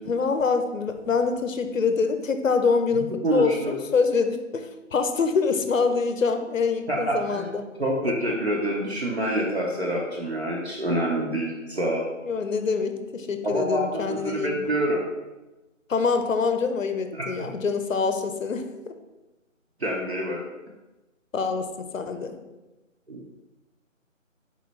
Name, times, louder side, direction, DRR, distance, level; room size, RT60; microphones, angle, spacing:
voice 1, 0.1-7.7 8.0-8.1 12.2-14.7 15.9-18.6 21.3-22.4, left 5 dB, 75° left, 8 dB, 0.6 m, -25 dB
voice 2, 3.2-3.7 6.9-7.5 7.8-12.1 13.4-15.0 17.1-17.2 19.8-20.4 23.1-23.2, right 1 dB, 55° right, -3 dB, 0.7 m, -26 dB
4.1 x 3.8 x 3.1 m, 1.1 s
figure-of-eight pair, 175°, 40 cm